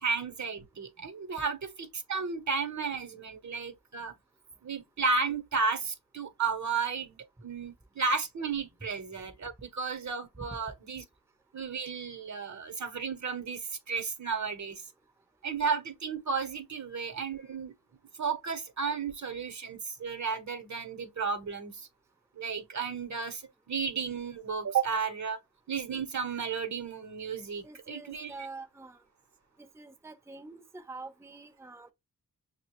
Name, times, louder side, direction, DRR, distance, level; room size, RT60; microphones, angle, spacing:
voice 1, 0.0-4.1 4.6-11.0 11.5-14.8 15.4-17.7 18.2-21.9 22.4-25.4 25.7-28.3, right 5 dB, 50° right, 0.8 m, -33 dB
voice 2, 27.6-29.0 29.6-31.9, right 3 dB, 5° right, 0.6 m, -46 dB
5.9 x 2.1 x 2.9 m
cardioid pair, 75°, 36 cm